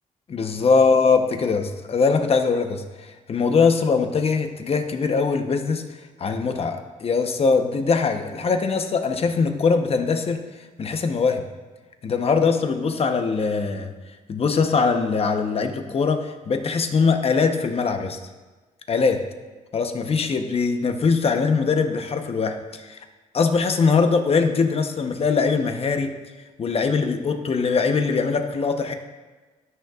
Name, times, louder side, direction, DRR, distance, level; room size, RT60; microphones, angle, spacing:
voice 1, 0.3-5.9 6.2-10.4 10.8-11.5 12.0-13.9 14.3-18.2 18.9-19.3 19.7-23.0 23.3-26.2 26.6-28.9, left 5 dB, 45° left, 6 dB, 0.9 m, -22 dB
15.0 x 6.5 x 2.4 m, 1.3 s
cardioid pair, 95°, 14 cm